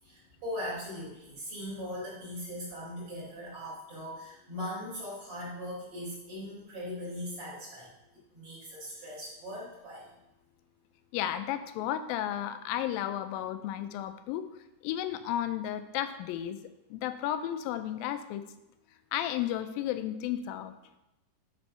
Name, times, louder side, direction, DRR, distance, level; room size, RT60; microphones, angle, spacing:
voice 1, 0.0-10.1, left 1 dB, 40° right, -6 dB, 4.5 m, -40 dB
voice 2, 11.1-14.4 14.8-16.6 16.9-18.4 19.1-20.7, left 11 dB, 85° left, 10 dB, 2.3 m, -33 dB
9.8 x 4.5 x 5.5 m, 0.93 s
omnidirectional pair, 4.1 m